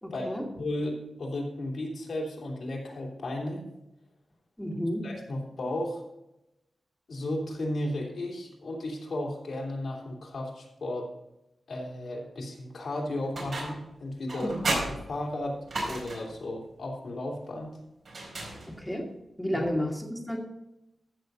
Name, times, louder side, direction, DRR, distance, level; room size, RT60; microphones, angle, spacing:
voice 1, 0.0-0.5 4.6-5.1 14.4-14.6 18.7-19.1 19.4-20.4, equal, 5° left, 0 dB, 2.2 m, -31 dB
voice 2, 0.6-3.6 5.0-6.0 7.1-11.1 11.7-14.5 15.1-17.7 19.5-19.6, left 1 dB, 65° left, -2 dB, 3.1 m, -34 dB
sound 1, 13.3-13.9 14.3-16.4 18.0-19.0, right 2 dB, 60° right, 4.5 m, -34 dB
14.5 x 6.7 x 4.0 m, 0.89 s
wide cardioid pair, 110°, 0 cm